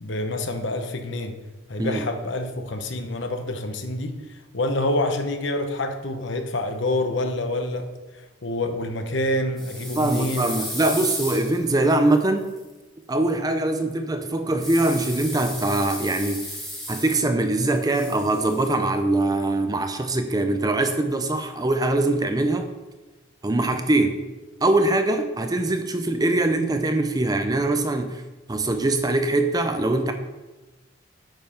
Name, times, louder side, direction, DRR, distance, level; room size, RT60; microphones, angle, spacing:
voice 1, 0.0-1.3 1.7-7.9 8.4-10.5, left 1 dB, 60° left, 6 dB, 1.0 m, -27 dB
sound 1, 9.6-12.6 14.6-17.4 17.7-18.8, equal, ahead, 2.0 m, -35 dB
voice 2, 10.0-12.5 13.1-16.5 16.9-22.7 23.4-24.2 24.6-28.2 28.5-30.1, right 2 dB, 20° right, 7 dB, 0.5 m, -22 dB
9.0 x 5.3 x 5.7 m, 1.1 s
head